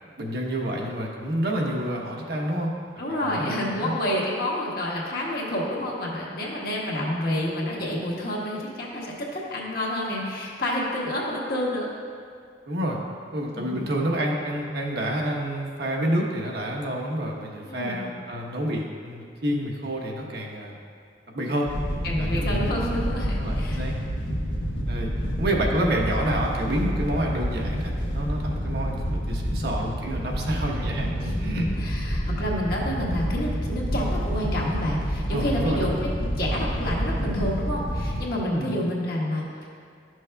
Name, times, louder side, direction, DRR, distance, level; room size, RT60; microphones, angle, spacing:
voice 1, 0.2-2.7 3.1-3.9 12.7-13.0 13.3-20.8 21.3-21.7 22.2-22.8 23.4-23.9 24.9-25.1 25.4-29.0 29.3-31.6 35.3-35.9 38.5-38.7, right 1 dB, 60° right, -1 dB, 1.0 m, -28 dB
voice 2, 3.0-11.9 13.6-13.8 17.6-18.0 22.0-23.9 31.2-39.7, left 1 dB, 55° left, -4 dB, 1.4 m, -29 dB
Wind / Boat Water vehicle, 21.7-38.2, equal, 75° left, 1.2 m, -28 dB
11.5 x 6.2 x 2.3 m, 2.3 s
head